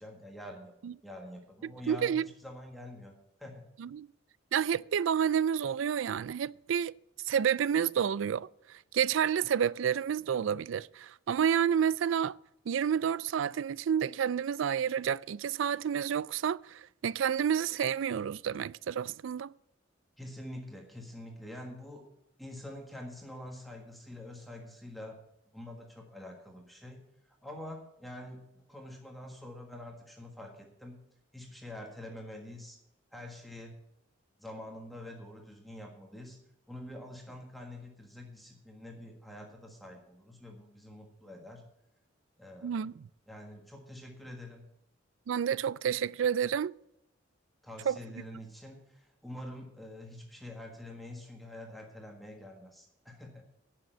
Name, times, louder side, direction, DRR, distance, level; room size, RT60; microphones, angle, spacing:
voice 1, 0.0-0.7 1.0-3.1 3.4-3.6 20.2-22.1 22.4-25.2 25.5-27.0 27.4-31.0 31.3-32.8 33.1-33.7 34.4-36.4 36.7-41.6 42.4-42.8 43.3-44.7 47.6-53.4, left 1 dB, ahead, 1.5 m, -46 dB
voice 2, 1.6-2.3 3.8-4.1 4.5-6.9 7.3-12.4 12.7-19.5 42.6-43.1 45.3-46.7 47.9-48.0, right 8 dB, 75° right, 0.3 m, -30 dB
11.0 x 6.7 x 7.7 m
head